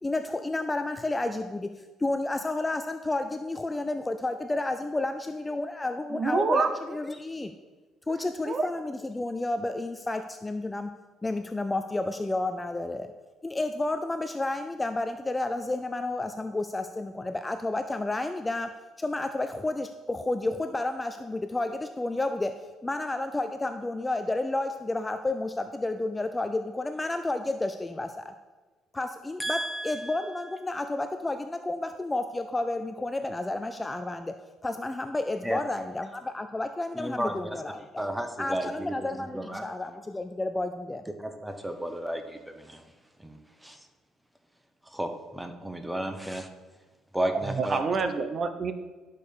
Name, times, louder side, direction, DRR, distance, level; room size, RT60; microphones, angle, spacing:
voice 1, 0.0-7.5 8.1-10.9 11.2-13.1 13.4-28.3 28.9-34.4 34.6-38.0 38.4-41.0, left 2 dB, 10° left, 8 dB, 0.4 m, -31 dB
voice 2, 6.1-6.7 8.5-8.6 47.5-48.7, right 4 dB, 35° right, 9 dB, 0.7 m, -26 dB
voice 3, 29.4-30.5 35.4-35.6 36.9-37.6 38.0-39.8 41.2-42.8 43.2-43.9 44.8-46.5 47.1-47.8, right 1 dB, 5° right, 6 dB, 0.9 m, -33 dB
11.5 x 6.6 x 5.3 m, 1.3 s
cardioid pair, 145°, 0 cm